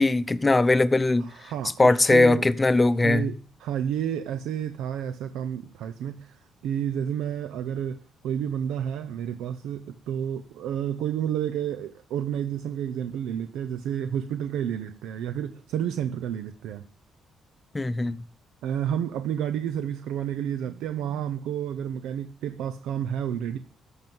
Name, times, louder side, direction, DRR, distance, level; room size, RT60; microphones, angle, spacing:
voice 1, 0.0-1.5 1.8-3.3 17.7-18.2, left 2 dB, 20° left, 0.7 m, -20 dB
voice 2, 1.4-2.4 3.0-6.3 6.6-16.8 18.6-23.6, right 9 dB, 90° right, 0.7 m, -30 dB
13.5 x 5.5 x 7.7 m
cardioid pair, 90°, 0 cm